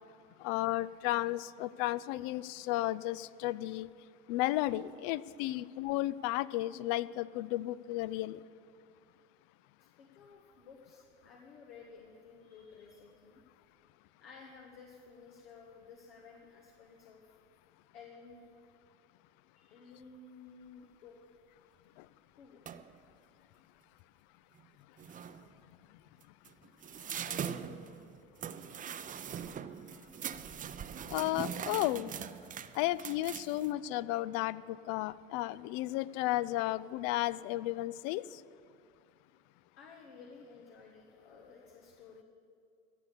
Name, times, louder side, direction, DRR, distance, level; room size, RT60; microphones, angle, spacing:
voice 1, 0.4-3.9 4.3-8.4 31.1-32.1 32.7-38.2, left 16 dB, 55° left, 18 dB, 0.5 m, -33 dB
voice 2, 10.0-13.4 14.2-17.3 17.9-18.4 19.5-21.2 22.4-22.7 27.2-28.2 28.7-28.9 39.8-42.2, left 5 dB, 80° left, 0 dB, 1.5 m, -54 dB
sound 1, 22.7-23.0 24.6-24.7 25.0-25.5 26.2-33.7, right 8 dB, 25° right, 0.6 m, -42 dB
15.0 x 6.9 x 8.3 m, 2.3 s
hypercardioid pair, 80°, 30 cm